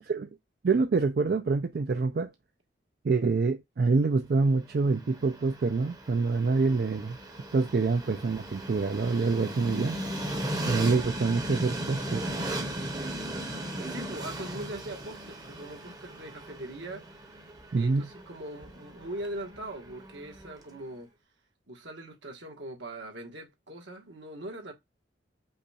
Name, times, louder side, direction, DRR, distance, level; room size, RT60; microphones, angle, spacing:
voice 1, 0.6-2.3 3.0-7.2 7.5-10.0 10.7-12.4 17.7-18.1, right 4 dB, 55° right, 0.4 m, -26 dB
Train, 4.7-20.8, right 1 dB, 20° right, 0.8 m, -37 dB
voice 2, 13.8-17.0 17.4-17.5 17.8-21.1 21.7-24.7, right 1 dB, 70° right, 1.3 m, -41 dB
5.4 x 2.3 x 4.1 m
head